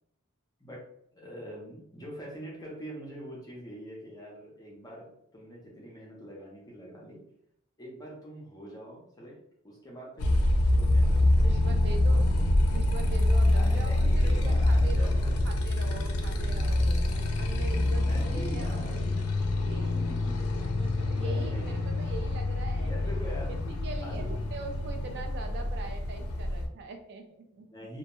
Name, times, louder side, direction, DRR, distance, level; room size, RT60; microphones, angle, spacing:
voice 1, 0.6-7.3 7.8-10.4 10.7-11.7 13.5-15.6 16.2-16.4 17.9-19.2 19.9-20.4 21.2-22.1 22.9-23.5 24.0-24.3 27.7-28.0, equal, 20° left, -3 dB, 0.6 m, -44 dB
Motorcycle, 10.2-26.7, left 1 dB, 85° left, 0.4 m, -26 dB
voice 2, 11.4-12.3 12.7-18.9 19.3-20.1 20.8-23.1 23.5-27.7, right 3 dB, 50° right, 5 dB, 0.3 m, -42 dB
2.2 x 2.1 x 2.9 m, 0.73 s
head